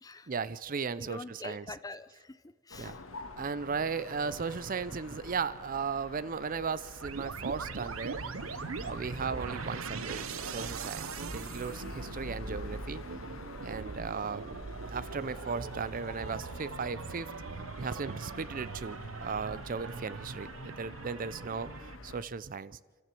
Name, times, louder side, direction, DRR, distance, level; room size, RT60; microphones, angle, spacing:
voice 1, 0.3-1.7 2.8-3.0 3.4-8.2 8.8-13.0 13.6-17.3 17.8-21.7 22.0-22.8, right 5 dB, 40° right, 16 dB, 0.5 m, -36 dB
voice 2, 1.0-3.0, left 2 dB, 20° left, 13 dB, 0.7 m, -44 dB
sound 1, 2.7-22.2, left 2 dB, 75° left, 1.6 m, -47 dB
sound 2, 7.0-22.0, right 5 dB, 80° right, 0.7 m, -41 dB
29.0 x 13.5 x 7.6 m, 1.5 s
head